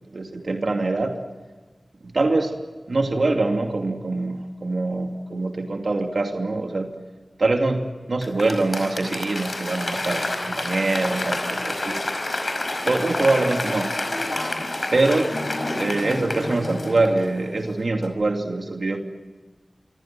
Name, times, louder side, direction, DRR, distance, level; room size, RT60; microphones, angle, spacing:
voice 1, 0.1-1.2 2.0-2.6 2.9-7.0 7.4-12.0 12.8-13.9 14.9-15.3 15.8-19.0, right 2 dB, 65° right, 4 dB, 2.7 m, -24 dB
Applause / Crowd, 8.2-17.6 18.0-18.1, left 2 dB, 45° left, 5.2 m, -28 dB
26.5 x 25.5 x 7.7 m, 1.3 s
wide cardioid pair, 85°, 0 cm